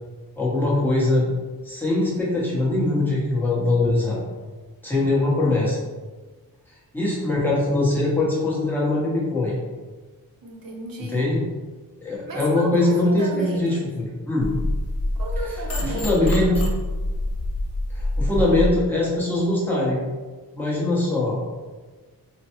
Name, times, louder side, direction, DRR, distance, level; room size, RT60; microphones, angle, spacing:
voice 1, 0.4-1.3 1.6-4.2 4.8-5.8 6.9-9.5 11.1-11.4 12.0-14.5 15.9-16.6 17.9-20.0 20.5-21.4, left 2 dB, 5° left, -7 dB, 1.1 m, -22 dB
voice 2, 10.4-11.3 12.3-13.8 15.1-16.7, right 2 dB, 65° right, -1 dB, 0.8 m, -34 dB
sound 1, 14.4-18.7, left 1 dB, 40° left, 0.6 m, -26 dB
3.8 x 2.2 x 3.0 m, 1.3 s
wide cardioid pair, 110°, 37 cm